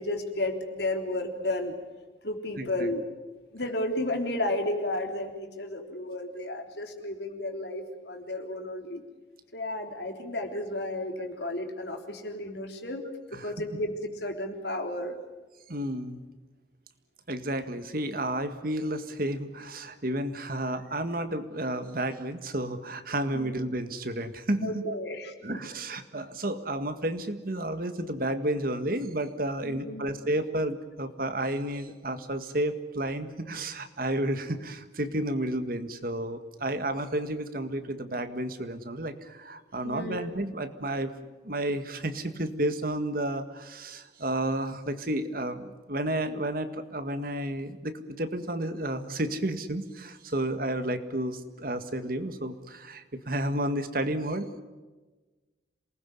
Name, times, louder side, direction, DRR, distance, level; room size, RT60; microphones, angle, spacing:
voice 1, 0.0-1.8 2.2-3.0 3.5-9.0 9.5-13.0 13.3-13.9 14.2-15.1 23.3-23.5 24.6-25.7 29.6-30.0 39.8-40.2, left 1 dB, 65° left, 4 dB, 3.6 m, -33 dB
voice 2, 2.6-2.9 13.3-13.5 15.7-16.3 17.3-25.0 25.4-41.1 41.4-54.6, right 1 dB, 50° right, 10 dB, 1.8 m, -31 dB
27.5 x 20.0 x 9.5 m, 1.2 s
head